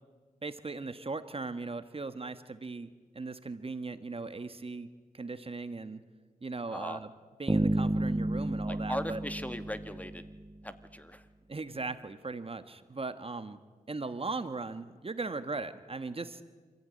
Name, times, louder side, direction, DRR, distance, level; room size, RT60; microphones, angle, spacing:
voice 1, 0.4-2.9 3.1-4.9 5.1-6.0 6.4-7.1 7.4-9.2 11.5-13.6 13.9-16.4, right 3 dB, 40° right, 11 dB, 1.4 m, -38 dB
voice 2, 6.7-7.0 8.7-10.2 10.6-11.2, equal, 10° left, 10 dB, 1.8 m, -38 dB
sound 1, 7.5-10.5, right 1 dB, 15° right, 1.1 m, -31 dB
27.5 x 15.0 x 9.7 m, 1.4 s
cardioid pair, 60°, 15 cm